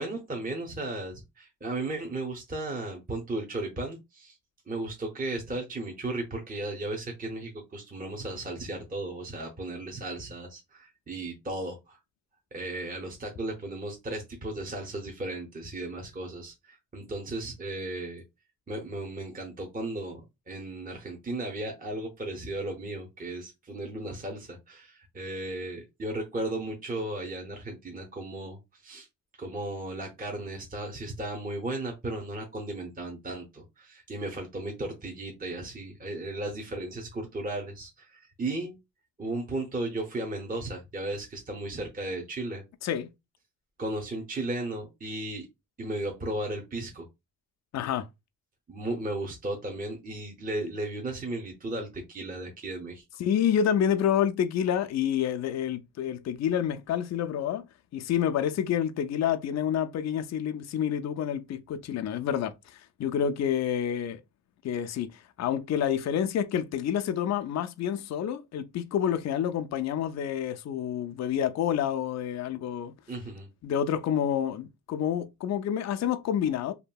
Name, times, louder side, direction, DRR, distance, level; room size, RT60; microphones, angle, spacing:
voice 1, 0.0-4.4 4.7-12.0 12.5-18.2 18.7-29.1 29.4-38.8 39.2-42.6 43.8-45.5 45.8-47.1 48.7-53.0 73.1-73.5, right 2 dB, 25° right, 0.8 m, -35 dB
voice 2, 47.7-48.1 53.2-57.6 57.9-64.2 64.6-65.1 65.4-72.9 73.6-76.7, left 9 dB, 50° left, 0.4 m, -28 dB
2.8 x 2.6 x 2.2 m
cardioid pair, 65°, 37 cm